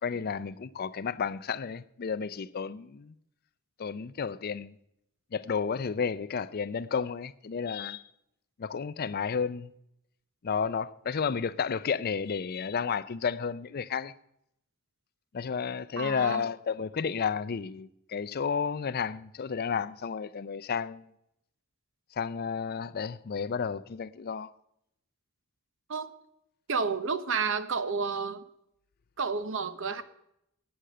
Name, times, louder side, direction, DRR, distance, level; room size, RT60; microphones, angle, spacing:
voice 1, 0.0-3.1 3.8-4.7 5.3-8.0 8.6-9.7 10.4-14.1 15.3-21.1 22.2-24.5, left 6 dB, 45° left, 0.4 m, -32 dB
voice 2, 16.0-16.4 25.9-26.1 26.7-28.4 29.2-30.0, right 5 dB, 65° right, 0.9 m, -30 dB
11.5 x 8.9 x 6.7 m
head